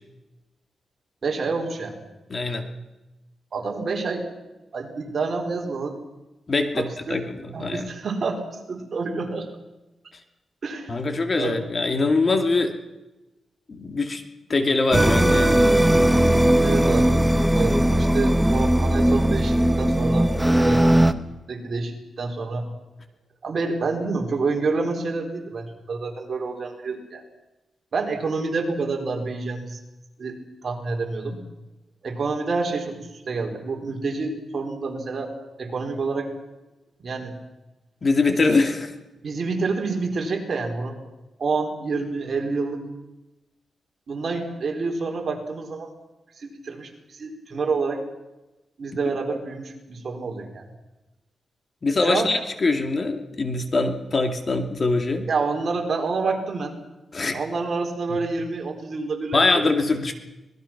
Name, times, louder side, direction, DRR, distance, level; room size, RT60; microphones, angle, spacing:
voice 1, 1.2-2.0 3.5-4.3 4.7-6.0 6.8-7.2 7.5-9.5 10.6-11.1 11.3-11.6 16.6-20.3 20.6-21.0 21.5-22.7 23.4-27.2 27.9-29.8 30.2-31.4 32.0-35.3 35.6-36.3 37.0-37.3 39.2-41.0 41.4-42.8 44.1-45.9 46.4-48.0 48.8-50.7 52.0-52.3 55.3-56.8 57.3-59.7, right 4 dB, 50° right, 2 dB, 4.1 m, -28 dB
voice 2, 2.3-2.7 6.5-7.9 10.9-12.7 13.7-14.2 14.5-15.7 38.0-38.9 51.8-55.3 57.1-57.4 58.1-58.2 59.3-60.1, left 3 dB, 35° left, 5 dB, 2.4 m, -23 dB
sound 1, 14.9-21.1, right 1 dB, 5° right, 1.1 m, -18 dB
25.5 x 20.0 x 6.0 m, 1.0 s
wide cardioid pair, 120°, 0 cm